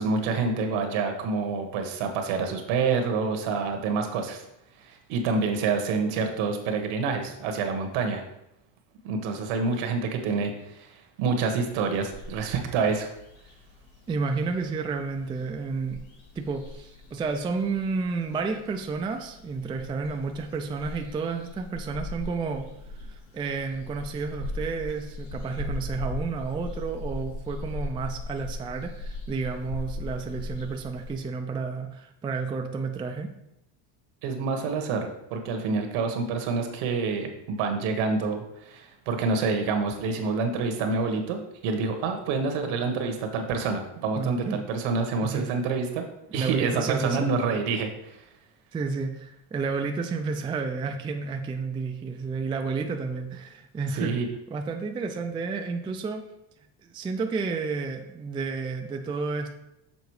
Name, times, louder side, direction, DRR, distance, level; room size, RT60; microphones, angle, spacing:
voice 1, 0.0-4.5 4.8-8.2 9.0-13.1 34.2-46.0 46.3-48.2 53.9-54.3, right 4 dB, 75° right, 5 dB, 1.4 m, -27 dB
sound 1, 11.6-31.2, left 2 dB, 90° left, 1.9 m, -39 dB
voice 2, 14.1-16.0 16.4-22.7 23.1-33.3 44.2-44.6 45.2-45.5 46.3-47.4 48.7-54.1 54.5-56.2 56.8-59.5, right 4 dB, 10° right, 4 dB, 0.3 m, -31 dB
7.1 x 3.9 x 4.8 m, 0.85 s
cardioid pair, 130°, 47 cm